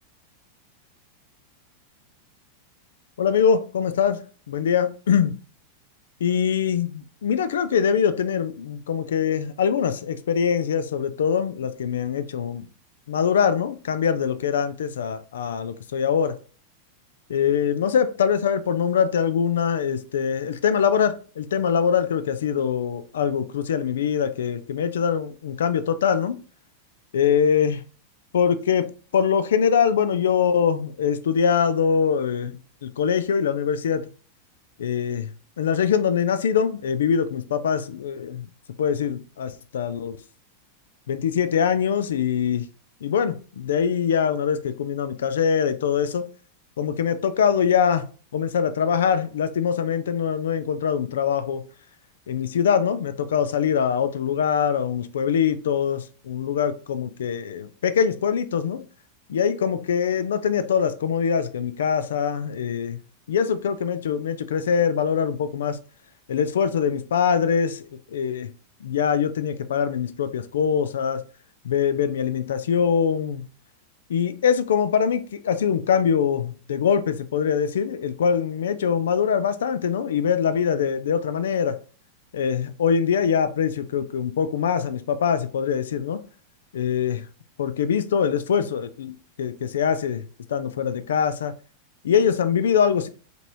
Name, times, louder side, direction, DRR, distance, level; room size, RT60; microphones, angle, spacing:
voice 1, 3.2-4.2 4.5-5.3 6.2-12.7 13.1-16.4 17.3-26.4 27.1-27.8 28.3-28.9 29.1-32.6 32.8-34.0 34.8-35.3 35.6-38.4 38.8-40.2 41.1-42.7 43.0-46.3 46.8-48.0 48.3-51.6 52.3-58.8 59.3-63.0 63.3-65.8 66.3-67.9 68.1-68.5 68.8-71.2 71.6-73.4 74.1-81.8 82.3-86.2 86.7-87.2 87.6-89.1 89.4-90.2 90.5-91.5 92.0-93.1, left 7 dB, 65° left, 0.4 m, -23 dB
5.1 x 3.1 x 2.6 m
figure-of-eight pair, 90°, 0 cm